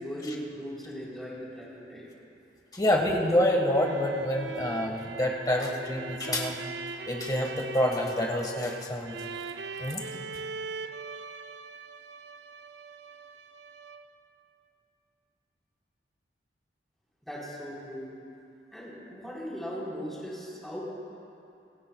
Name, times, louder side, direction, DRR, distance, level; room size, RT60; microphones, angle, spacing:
voice 1, 0.0-2.1 17.2-18.1 18.7-20.8, equal, ahead, -7 dB, 4.0 m, -38 dB
voice 2, 2.7-6.6 7.1-9.2 9.8-10.0, left 1 dB, 20° left, 0 dB, 1.5 m, -27 dB
sound 1, 3.6-14.3, right 4 dB, 70° right, 0.5 m, -41 dB
25.0 x 16.5 x 2.3 m, 2.7 s
head